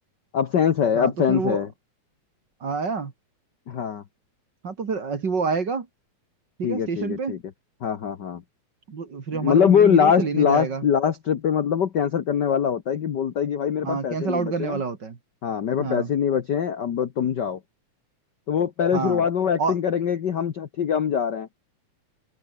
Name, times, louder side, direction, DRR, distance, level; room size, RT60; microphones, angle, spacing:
voice 1, 0.3-1.7 3.7-4.0 6.6-7.4 7.8-8.4 9.3-14.8 15.4-17.6 18.5-21.5, left 8 dB, 55° left, 1.2 m, -23 dB
voice 2, 0.9-1.6 2.6-3.1 4.6-5.9 6.6-7.4 8.9-10.8 13.8-15.2 15.8-16.1 18.9-19.3 19.6-19.7, right 5 dB, 40° right, 2.4 m, -28 dB
omnidirectional pair, 3.4 m